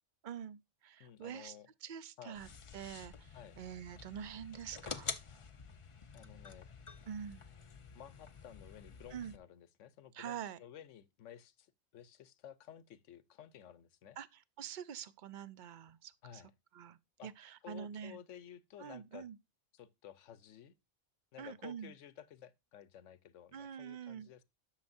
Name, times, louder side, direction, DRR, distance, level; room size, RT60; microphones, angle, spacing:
voice 1, 0.2-2.5 2.7-5.2 7.1-7.5 9.1-9.3 10.1-10.6 14.2-16.4 16.7-18.2 18.8-19.4 21.4-21.9 23.5-24.3, right 8 dB, 55° right, 0.5 m, -46 dB
voice 2, 1.0-1.7 2.2-2.4 3.3-3.6 6.1-6.7 7.9-14.2 16.2-16.5 17.2-17.3 17.6-19.3 19.7-20.7 21.3-24.4, left 9 dB, 75° left, 1.1 m, -54 dB
sound 1, 2.4-9.4, left 5 dB, 40° left, 0.5 m, -48 dB
11.5 x 6.4 x 2.6 m
omnidirectional pair, 1.3 m